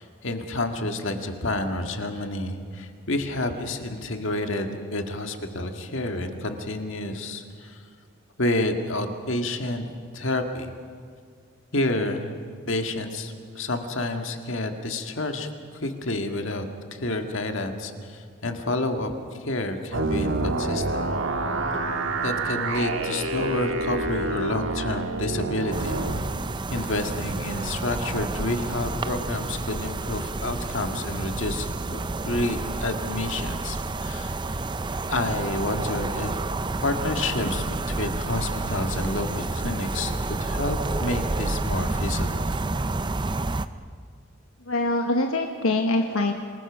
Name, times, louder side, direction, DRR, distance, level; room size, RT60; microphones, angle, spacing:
voice 1, 0.0-7.8 8.4-9.9 10.1-10.7 11.7-12.3 12.7-16.6 16.9-19.1 19.4-21.0 21.7-21.8 22.2-26.0 26.7-32.0 32.2-34.6 35.1-36.4 36.8-42.5, left 2 dB, 60° left, 5 dB, 1.9 m, -29 dB
sound 1, 19.9-26.2, right 2 dB, 65° right, 1.6 m, -27 dB
sound 2, 25.7-43.7, right 2 dB, 20° right, 0.5 m, -30 dB
voice 2, 44.7-46.3, left 2 dB, 80° left, 4 dB, 1.3 m, -24 dB
27.5 x 20.0 x 6.2 m, 2.1 s
head